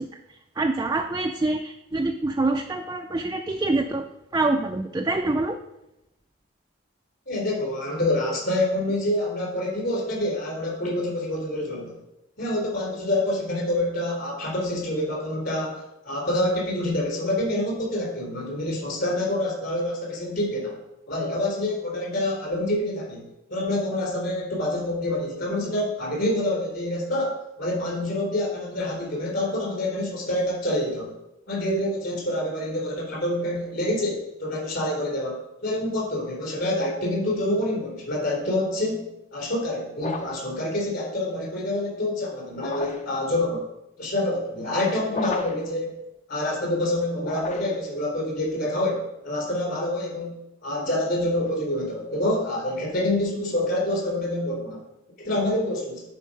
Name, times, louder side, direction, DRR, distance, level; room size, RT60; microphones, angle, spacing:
voice 1, 0.0-4.1 4.3-5.6, right 2 dB, 20° right, 3 dB, 0.4 m, -26 dB
voice 2, 7.3-11.9 12.4-20.8 21.1-27.3 27.6-31.1 31.5-43.7 44.0-46.0 46.3-50.4 50.6-54.8 55.2-56.0, left 1 dB, 55° left, -2 dB, 3.7 m, -27 dB
sound 1, 40.0-40.5 42.5-43.2 45.1-45.7 47.2-47.9, left 3 dB, 35° left, 0.6 m, -33 dB
10.5 x 4.6 x 5.1 m, 0.89 s
head